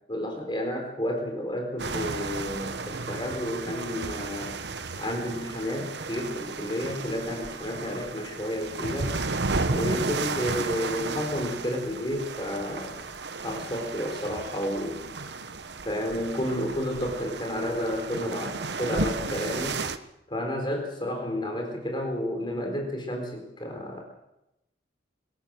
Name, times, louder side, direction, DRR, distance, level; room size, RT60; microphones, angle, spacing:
voice 1, 0.1-4.5 5.0-9.1 9.7-13.0 13.4-15.0 15.8-19.8 20.3-24.0, left 1 dB, 25° left, 2 dB, 4.2 m, -31 dB
sound 1, 1.8-20.0, right 3 dB, 65° right, 1.1 m, -33 dB
23.5 x 14.5 x 7.7 m, 0.88 s
head